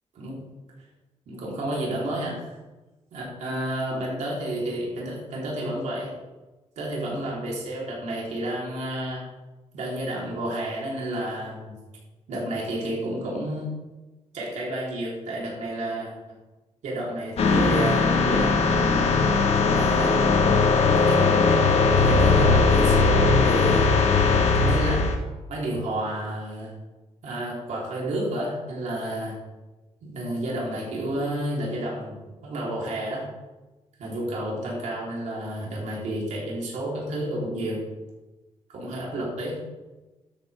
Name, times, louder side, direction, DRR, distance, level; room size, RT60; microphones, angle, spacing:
voice 1, 1.3-2.6 3.1-6.1 6.8-9.2 9.7-11.8 12.3-13.7 14.3-16.1 16.8-19.0 19.7-20.5 20.8-21.6 22.0-23.9 24.6-25.1 25.5-26.7 27.2-29.4 30.0-33.3 34.0-37.9 38.7-39.6, right 1 dB, 75° right, -4 dB, 3.9 m, -31 dB
sound 1, 17.4-25.2, left 4 dB, 60° left, 1.6 m, -19 dB
12.5 x 9.0 x 3.6 m, 1.1 s
wide cardioid pair, 150°, 12 cm